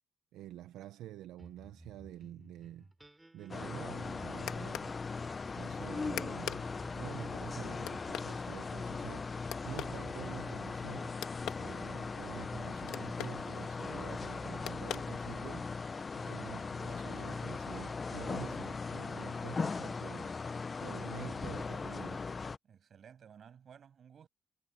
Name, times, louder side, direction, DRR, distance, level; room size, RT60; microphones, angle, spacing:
voice 1, 0.3-11.2 11.6-16.0 16.3-22.2, right 13 dB, 90° right, 0.8 m, -48 dB
sound 1, 1.4-16.1, right 1 dB, 10° right, 5.2 m, -59 dB
sound 2, 3.5-22.6, left 4 dB, 35° left, 0.6 m, -39 dB
sound 3, 3.8-15.7, left 12 dB, 85° left, 1.6 m, -47 dB
voice 2, 16.1-16.6 22.6-24.3, right 7 dB, 55° right, 7.4 m, -57 dB
cardioid pair, 90°, 0 cm